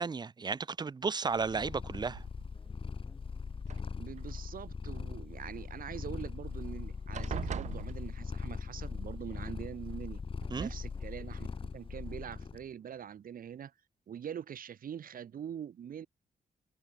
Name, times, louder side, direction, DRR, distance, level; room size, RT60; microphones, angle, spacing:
voice 1, 0.0-2.2 10.5-10.7, right 5 dB, 30° right, 0.8 m, -33 dB
Purr, 1.3-12.6, left 5 dB, 35° left, 2.8 m, -40 dB
sound 1, 2.1-2.7 3.6-4.4 6.2-6.3 6.6-6.8 7.1-8.6 9.7-9.8 10.4-10.7, right 9 dB, 50° right, 0.5 m, -42 dB
sound 2, 2.5-4.2 5.5-13.3, left 3 dB, 20° left, 7.0 m, -61 dB
voice 2, 4.0-10.2 10.6-11.5 11.7-13.7 14.1-16.1, right 9 dB, 70° right, 6.1 m, -44 dB
wide cardioid pair, 140°, 15 cm